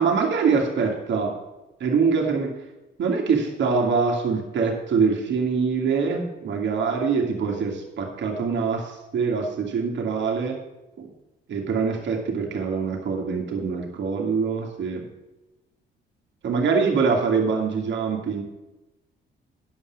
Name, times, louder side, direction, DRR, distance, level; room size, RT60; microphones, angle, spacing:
voice 1, 0.0-1.4 1.8-2.5 3.0-10.6 11.0-11.1 11.5-15.0 16.4-18.4, right 5 dB, 65° right, 1 dB, 2.3 m, -24 dB
10.5 x 5.8 x 7.4 m, 1.0 s
cardioid pair, 90°, 20 cm